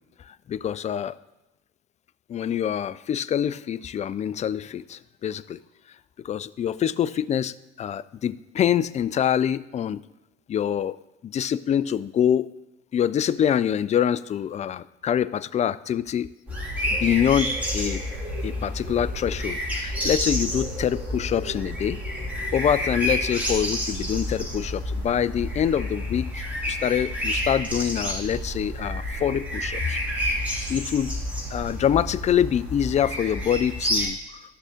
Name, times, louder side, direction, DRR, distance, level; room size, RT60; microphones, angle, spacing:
voice 1, 0.3-1.2 2.3-5.6 6.2-10.0 10.5-11.0 11.2-12.5 12.9-16.3 17.0-18.0 18.4-22.0 22.5-30.0 30.7-31.1 31.5-34.6, left 9 dB, 25° left, 16 dB, 0.3 m, -25 dB
sound 1, 16.5-34.1, equal, 5° right, 3.0 m, -29 dB
13.0 x 6.3 x 3.7 m, 0.97 s
hypercardioid pair, 60°, 32 cm